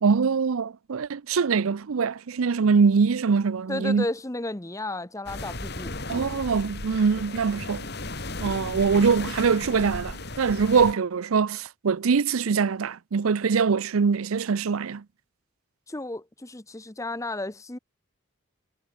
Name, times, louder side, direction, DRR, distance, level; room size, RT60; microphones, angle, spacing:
voice 1, 0.0-4.1 6.1-7.9 8.4-15.0, right 5 dB, 85° right, 0.5 m, -23 dB
voice 2, 3.7-6.0 15.9-17.8, left 2 dB, 15° left, 0.9 m, -33 dB
sound 1, 5.3-10.9, left 2 dB, 50° left, 5.7 m, -35 dB
head